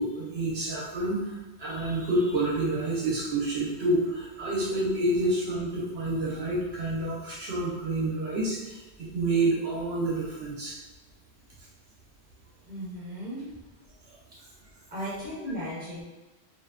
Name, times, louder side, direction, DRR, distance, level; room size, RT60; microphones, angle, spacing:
voice 1, 0.0-10.7 14.1-14.2, right 2 dB, 70° right, -6 dB, 0.8 m, -28 dB
voice 2, 12.6-13.5 14.9-16.0, equal, 10° right, -9 dB, 1.0 m, -36 dB
2.5 x 2.1 x 2.3 m, 1.1 s
omnidirectional pair, 1.2 m